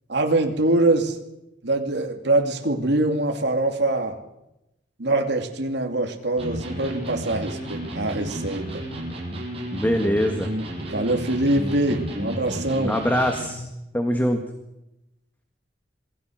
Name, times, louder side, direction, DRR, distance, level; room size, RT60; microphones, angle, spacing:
voice 1, 0.1-1.2 1.6-4.2 5.0-8.8 10.9-13.0, right 2 dB, 70° right, 3 dB, 2.7 m, -23 dB
Electric guitar, 6.4-13.7, equal, 35° right, 6.9 m, -32 dB
voice 2, 9.7-10.5 12.8-13.7 13.9-14.4, equal, 10° left, 4 dB, 1.9 m, -23 dB
27.0 x 20.0 x 6.5 m, 0.90 s
head